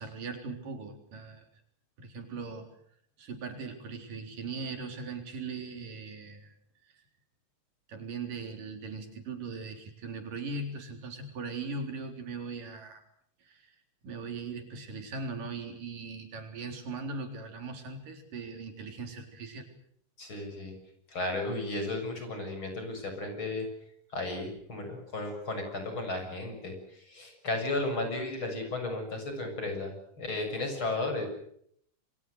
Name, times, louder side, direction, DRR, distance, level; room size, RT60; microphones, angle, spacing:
voice 1, 0.0-1.5 2.0-2.7 3.2-6.5 6.8-7.0 7.9-13.0 13.4-13.8 14.0-19.7, right 4 dB, 85° right, 5 dB, 5.5 m, -39 dB
voice 2, 20.2-20.7 21.1-23.7 24.1-31.3, left 2 dB, 35° left, 5 dB, 7.7 m, -34 dB
28.5 x 24.0 x 6.5 m, 0.69 s
omnidirectional pair, 3.7 m